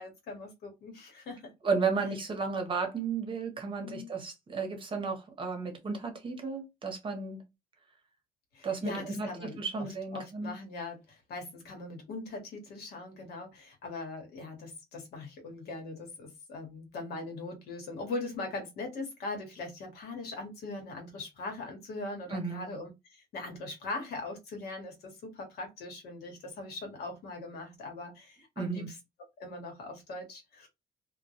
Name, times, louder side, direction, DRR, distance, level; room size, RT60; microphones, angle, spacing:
voice 1, 0.0-1.5 3.8-4.1 8.5-9.9 10.1-28.8 29.4-30.7, left 2 dB, 70° left, 1.1 m, -41 dB
voice 2, 1.6-7.4 8.6-10.5 22.3-22.7 28.6-28.9, right 4 dB, 30° right, 0.8 m, -33 dB
2.2 x 2.2 x 2.7 m
cardioid pair, 110°, 17 cm